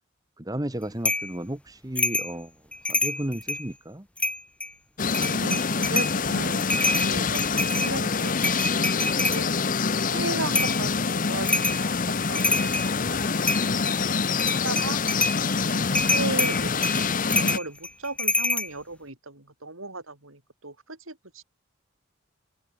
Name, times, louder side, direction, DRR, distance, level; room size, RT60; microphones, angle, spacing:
voice 1, 0.4-2.5 2.9-4.1, right 1 dB, 20° right, 1.2 m, -33 dB
sound 1, 1.0-1.3 2.0-2.3 2.7-3.7 4.2-4.7 5.1-6.2 6.5-9.4 10.5-10.8 11.5-11.8 12.2-12.9 13.4-14.0 14.3-15.4 15.9-18.7, left 2 dB, 5° left, 0.8 m, -26 dB
sound 2, 5.0-17.6, left 5 dB, 40° left, 0.8 m, -26 dB
voice 2, 5.3-9.5 10.1-12.0 12.3-13.9 14.5-15.0 15.6-21.4, right 2 dB, 85° right, 7.0 m, -36 dB
open air
head